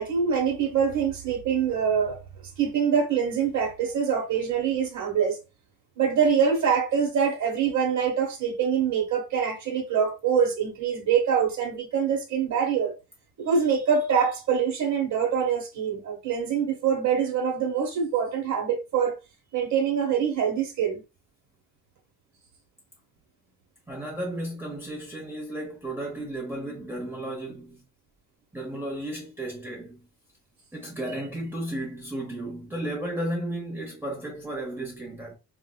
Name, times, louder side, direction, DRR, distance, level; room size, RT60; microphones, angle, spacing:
voice 1, 0.0-2.2 2.6-5.4 6.0-12.9 13.4-19.1 19.5-21.0, right 7 dB, 60° right, 1.1 m, -24 dB
voice 2, 23.9-27.8 28.5-30.0 30.7-35.3, right 1 dB, 5° right, 0.8 m, -34 dB
4.4 x 2.1 x 2.2 m
cardioid pair, 130°, 33 cm